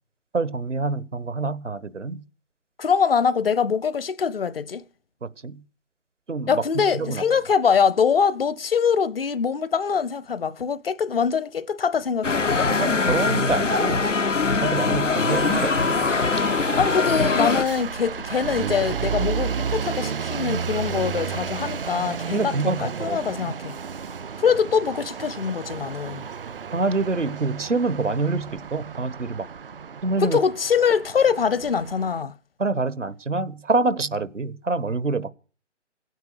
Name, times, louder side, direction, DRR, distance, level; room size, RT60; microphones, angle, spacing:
voice 1, 0.3-2.2 5.2-5.6 6.3-7.2 12.7-14.1 14.4-16.0 22.3-23.5 26.7-29.5 30.0-30.4 32.6-35.3, right 3 dB, 80° right, 1.4 m, -26 dB
voice 2, 2.8-4.8 6.5-12.7 16.8-23.8 24.4-26.2 30.2-32.3, left 6 dB, 50° left, 0.9 m, -23 dB
sound 1, 12.2-17.7, left 4 dB, 90° left, 1.0 m, -22 dB
sound 2, 15.3-32.2, right 6 dB, 50° right, 0.6 m, -32 dB
17.0 x 9.4 x 6.6 m
figure-of-eight pair, 145°, 36 cm